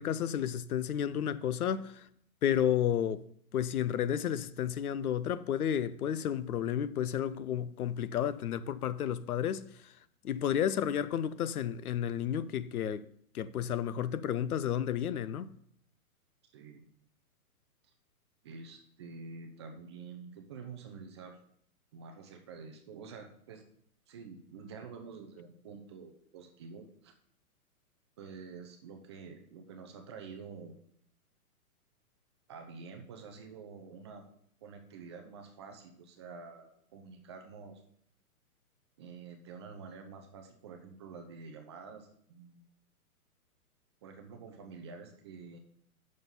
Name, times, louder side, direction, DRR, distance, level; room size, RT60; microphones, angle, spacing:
voice 1, 0.0-2.1 2.4-3.2 3.5-9.7 10.2-13.0 13.3-15.5, left 9 dB, 80° left, 0.7 m, -31 dB
voice 2, 16.5-16.9 18.4-21.4 21.9-23.6 24.1-27.1 28.2-30.8 32.5-34.3 34.6-37.8 39.0-42.6 44.0-45.6, right 5 dB, 20° right, 0.5 m, -48 dB
6.4 x 5.4 x 7.0 m
hypercardioid pair, 145°, 44 cm